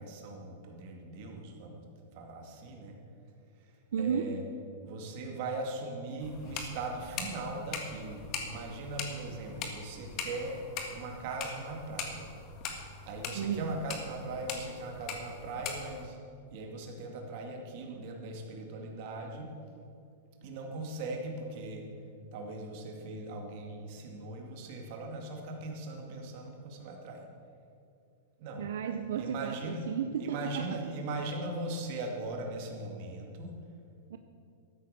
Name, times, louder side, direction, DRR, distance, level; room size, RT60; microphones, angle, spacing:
voice 1, 0.0-1.9 2.1-3.0 4.0-4.4 4.8-10.6 10.9-12.3 13.0-16.2 16.5-19.5 20.4-21.9 22.3-27.2 28.4-28.7 29.2-29.9 30.2-33.5, right 2 dB, 45° right, 2 dB, 2.3 m, -39 dB
voice 2, 3.9-4.3 13.3-13.7 28.6-30.9 34.1-34.2, right 7 dB, 75° right, 7 dB, 0.6 m, -33 dB
sound 1, 6.2-16.1, left 5 dB, 30° left, 1.6 m, -41 dB
13.0 x 9.4 x 6.7 m, 2.5 s
supercardioid pair, 160°, 0 cm